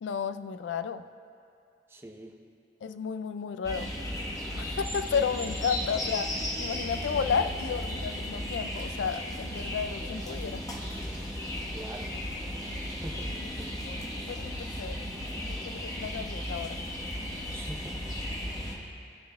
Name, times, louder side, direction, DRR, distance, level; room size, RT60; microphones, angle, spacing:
voice 1, 0.0-1.0 2.8-3.9 4.5-10.6 13.4-13.5 13.9-14.0 14.3-15.1 15.4-16.8, left 6 dB, 80° left, 12 dB, 0.3 m, -32 dB
voice 2, 1.9-2.3 11.7-12.2 13.0-13.8 17.5-18.1 18.5-18.7, right 1 dB, 15° right, 1 dB, 0.6 m, -44 dB
sound 1, 3.6-18.8, left 1 dB, 20° left, 1.1 m, -35 dB
16.5 x 6.8 x 2.2 m, 2.5 s
head